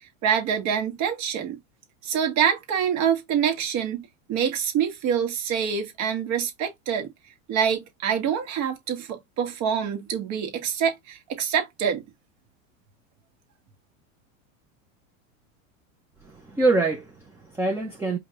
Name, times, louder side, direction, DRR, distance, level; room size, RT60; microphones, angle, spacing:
voice 1, 0.2-1.6 2.0-7.1 7.5-12.0, right 8 dB, 45° right, 1.5 m, -26 dB
voice 2, 16.2-18.2, right 3 dB, 5° right, 0.8 m, -25 dB
5.0 x 2.5 x 2.9 m
supercardioid pair, 125°, 41 cm